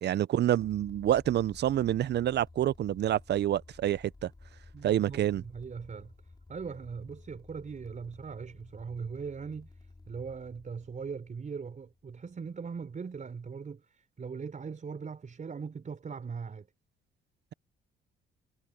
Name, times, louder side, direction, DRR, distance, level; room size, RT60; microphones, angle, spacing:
voice 1, 0.0-4.3 4.8-5.4, right 12 dB, 60° right, 0.6 m, -27 dB
sound 1, 0.6-12.3, left 3 dB, 20° left, 6.2 m, -54 dB
voice 2, 4.7-6.1 6.5-9.7 10.1-16.7, right 5 dB, 40° right, 4.5 m, -40 dB
cardioid pair, 90°, 20 cm